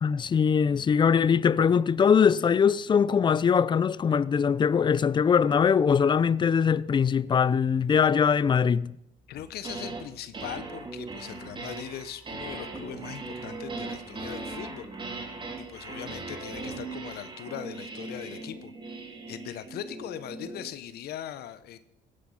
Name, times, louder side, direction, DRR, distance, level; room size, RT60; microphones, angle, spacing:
voice 1, 0.0-8.9, left 6 dB, 25° left, 0.5 m, -22 dB
voice 2, 9.3-14.9 15.6-18.7 19.3-21.8, left 11 dB, 70° left, 0.9 m, -40 dB
sound 1, 9.4-10.0 10.3-20.7, right 3 dB, 30° right, 2.5 m, -39 dB
17.0 x 10.0 x 5.6 m
cardioid pair, 110°, 17 cm